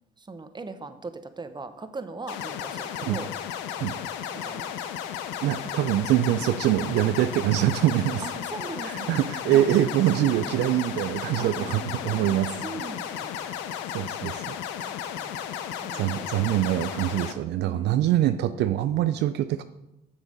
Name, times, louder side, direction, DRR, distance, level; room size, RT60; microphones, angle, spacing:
voice 1, 0.2-3.3 4.4-4.7 8.2-9.7 11.4-13.4 15.2-15.4 15.8-16.3 17.5-18.1, right 3 dB, 25° right, 10 dB, 1.0 m, -40 dB
sound 1, 2.3-17.3, left 9 dB, 80° left, 0.6 m, -34 dB
voice 2, 5.4-8.2 8.8-12.6 13.4-13.5 13.9-14.6 14.8-14.9 15.9-19.6, right 12 dB, 70° right, 11 dB, 0.4 m, -24 dB
7.2 x 7.0 x 5.1 m, 0.92 s
hypercardioid pair, 50°, 18 cm